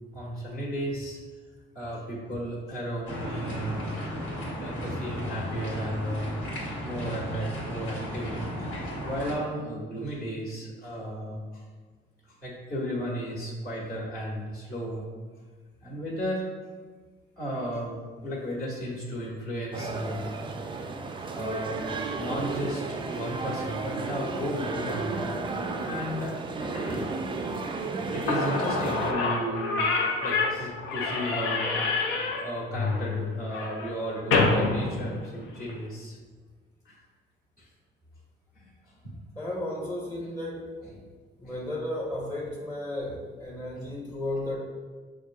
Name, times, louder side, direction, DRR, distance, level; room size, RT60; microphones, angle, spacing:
voice 1, 0.1-1.2 1.7-4.0 4.6-6.3 6.8-8.7 9.0-11.6 12.2-15.0 15.8-16.4 17.4-18.0 18.2-20.3 21.3-21.8 22.1-25.3 25.8-26.3 26.6-27.1 28.1-29.8 30.2-32.0 32.4-36.2 36.8-36.9 37.6-37.7 38.5-38.7 39.0-39.2 41.4-41.6, equal, 50° left, -5 dB, 1.3 m, -34 dB
sound 1, 3.1-9.3, equal, 70° left, 1.4 m, -34 dB
sound 2, 19.7-29.1, right 3 dB, 25° right, 0.3 m, -33 dB
Slam / Squeak, 28.0-28.1 28.3-35.8, left 3 dB, 90° left, 0.6 m, -27 dB
voice 2, 39.4-41.0 41.4-44.6, left 1 dB, 15° left, -4 dB, 0.8 m, -34 dB
6.3 x 2.5 x 2.3 m, 1.4 s
cardioid pair, 90°, 20 cm